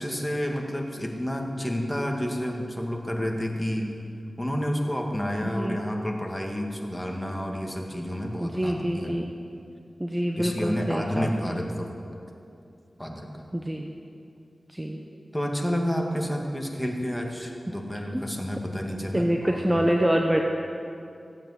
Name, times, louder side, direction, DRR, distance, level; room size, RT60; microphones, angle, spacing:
voice 1, 0.0-3.9 4.4-9.1 10.3-11.9 13.0-13.3 15.3-19.8, equal, 5° left, 1 dB, 2.0 m, -30 dB
voice 2, 5.4-5.8 8.4-9.3 10.0-11.6 13.5-13.9 14.7-15.0 18.1-18.2 19.1-20.4, right 1 dB, 15° right, 2 dB, 1.0 m, -26 dB
15.0 x 8.6 x 8.2 m, 2.6 s
wide cardioid pair, 65°, 0 cm